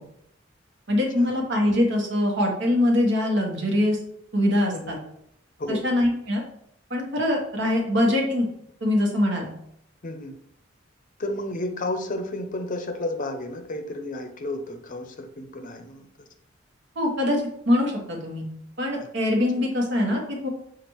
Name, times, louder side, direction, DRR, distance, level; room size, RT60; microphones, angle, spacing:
voice 1, 0.9-4.0 4.3-5.0 5.7-6.4 6.9-8.5 8.8-9.5 17.0-18.4 18.8-20.5, left 1 dB, 65° right, 0 dB, 1.1 m, -23 dB
voice 2, 4.7-5.0 5.6-5.8 10.0-10.4 11.2-16.1, left 1 dB, 45° left, 5 dB, 0.6 m, -32 dB
6.7 x 2.5 x 3.0 m, 0.72 s
head